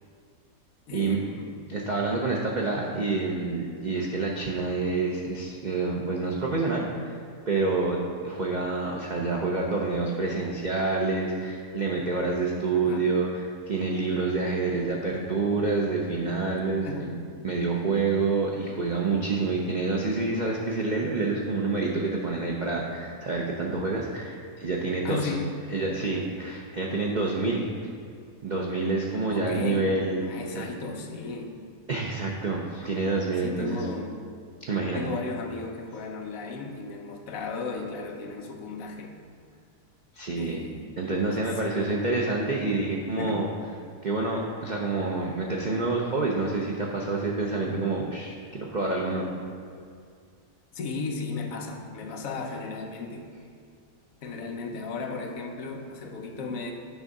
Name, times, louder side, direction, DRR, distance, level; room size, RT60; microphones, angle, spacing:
voice 1, 0.9-1.7 12.7-13.1 16.8-17.2 25.0-25.5 29.3-31.6 33.4-34.2 34.9-39.2 40.3-40.9 41.4-42.3 43.2-43.5 50.7-53.3 54.2-56.7, left 4 dB, 60° left, 3 dB, 1.1 m, -35 dB
voice 2, 1.7-7.1 7.5-8.0 8.2-17.1 17.4-25.4 25.7-27.7 28.4-30.2 30.5-30.7 31.9-33.8 34.7-35.0 40.1-40.6 41.0-43.5 44.0-49.3, right 3 dB, 75° right, -2 dB, 0.4 m, -27 dB
9.4 x 3.6 x 5.3 m, 2.2 s
omnidirectional pair, 1.7 m